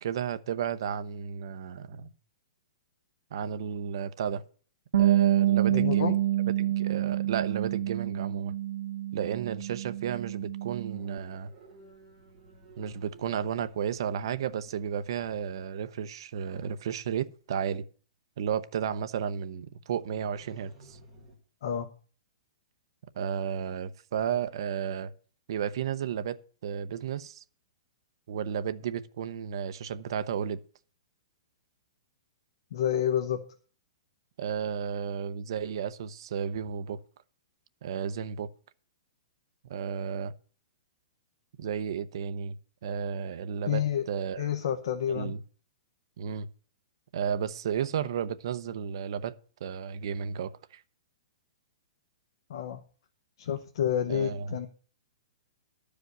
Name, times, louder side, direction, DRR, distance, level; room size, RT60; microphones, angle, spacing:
voice 1, 0.0-2.1 3.3-4.4 5.0-6.2 6.6-8.6 9.1-11.5 12.8-17.8 18.4-21.0 23.1-25.1 25.5-27.4 28.3-30.6 34.4-37.0 37.8-38.5 39.7-40.3 41.6-42.6 42.8-44.5 45.1-45.4 46.2-46.5 47.1-49.3 49.6-50.8 54.1-54.6, right 8 dB, 45° right, 0.7 m, -33 dB
Bass guitar, 4.9-11.2, right 13 dB, 80° right, 0.8 m, -27 dB
voice 2, 5.7-6.1 21.6-21.9 32.7-33.4 43.7-44.1 44.4-45.3 52.5-52.8 53.4-54.7, left 9 dB, 45° left, 0.9 m, -29 dB
sound 1, 6.7-7.1 10.8-15.8 20.0-21.4, right 3 dB, 5° right, 3.1 m, -55 dB
12.5 x 5.0 x 7.9 m
hypercardioid pair, 180°, 3 cm